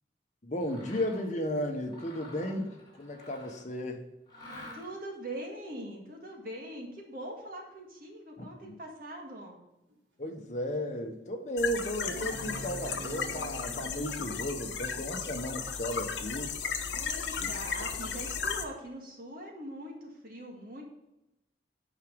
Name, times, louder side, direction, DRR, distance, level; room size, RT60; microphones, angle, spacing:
voice 1, 0.4-4.1 8.4-8.8 10.2-16.5 17.4-17.5, equal, 40° left, 3 dB, 1.2 m, -34 dB
Mechanisms, 0.6-1.3 1.8-3.7 4.3-5.1, left 1 dB, 25° left, 3.3 m, -48 dB
voice 2, 4.7-9.6 16.9-20.8, right 1 dB, 50° right, 0 dB, 1.9 m, -42 dB
sound 1, 9.9-10.0 10.6-10.7 12.0-14.5 16.2-16.3, right 2 dB, 85° right, 1.6 m, -44 dB
sound 2, 11.6-18.6, left 6 dB, 85° left, 0.9 m, -35 dB
9.1 x 5.0 x 5.2 m, 0.92 s
head